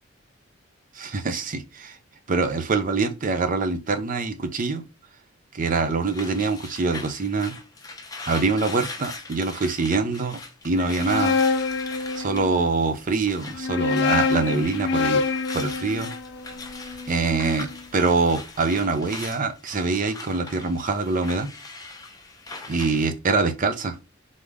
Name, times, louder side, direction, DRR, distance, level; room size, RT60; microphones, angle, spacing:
voice 1, 0.9-2.0 2.3-4.8 5.5-7.6 8.3-10.4 10.6-11.4 12.2-15.2 15.5-16.1 17.1-21.5 22.7-24.0, right 3 dB, 45° right, 0.6 m, -24 dB
sound 1, 5.6-13.6 13.8-23.1, left 3 dB, 20° left, 0.7 m, -40 dB
sound 2, 10.8-12.7 13.5-17.6, left 4 dB, 60° left, 0.5 m, -26 dB
3.8 x 3.5 x 3.5 m
head